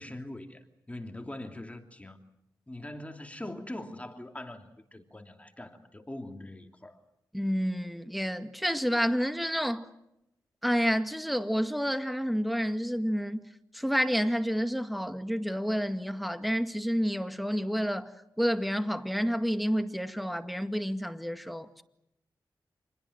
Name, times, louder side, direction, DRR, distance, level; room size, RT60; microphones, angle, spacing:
voice 1, 0.0-2.2 2.7-7.0, left 1 dB, 15° left, 2.9 m, -42 dB
voice 2, 7.3-9.8 10.6-13.5 13.7-18.1 18.4-21.8, equal, ahead, 2.0 m, -29 dB
27.0 x 21.5 x 7.9 m
cardioid pair, 60°, 8 cm